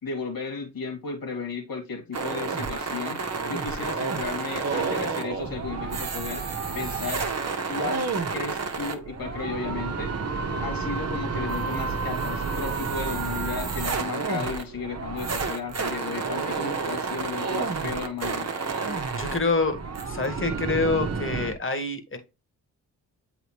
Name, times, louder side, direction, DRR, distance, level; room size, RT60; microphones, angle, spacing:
voice 1, 0.0-3.2 3.5-6.4 6.7-7.2 7.7-10.3 10.6-18.5, left 5 dB, 50° left, 2.6 m, -34 dB
sound 1, 2.1-21.5, right 4 dB, 35° right, 1.4 m, -30 dB
voice 2, 19.1-19.8 20.1-22.2, left 3 dB, 30° left, 2.0 m, -26 dB
7.7 x 4.2 x 3.1 m
hypercardioid pair, 45°, 44 cm